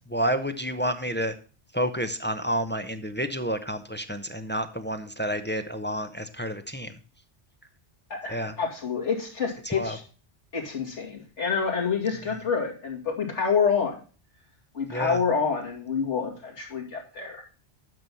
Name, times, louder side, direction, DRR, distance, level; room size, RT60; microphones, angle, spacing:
voice 1, 0.1-1.3 1.7-7.0 8.3-8.6 9.7-10.0 14.9-15.2, equal, 10° left, 8 dB, 0.6 m, -29 dB
voice 2, 8.1-10.0 10.5-14.0 14.7-17.4, left 6 dB, 85° left, 0 dB, 2.7 m, -27 dB
9.4 x 6.1 x 5.4 m, 0.38 s
omnidirectional pair, 1.2 m